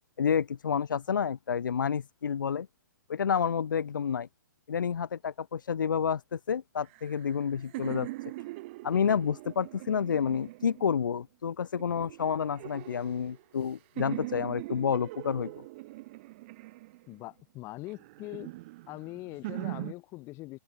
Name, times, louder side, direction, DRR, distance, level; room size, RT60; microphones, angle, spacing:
voice 1, 0.2-2.7 3.1-4.3 4.7-8.1 8.8-15.5, left 7 dB, 90° left, 0.5 m, -29 dB
sound 1, 6.8-11.2 11.8-13.7 14.0-17.3 17.9-19.9, right 20 dB, 35° right, 0.4 m, -42 dB
voice 2, 17.1-18.5 18.9-20.6, left 20 dB, 25° left, 1.1 m, -42 dB
open air
hypercardioid pair, 140°, 10 cm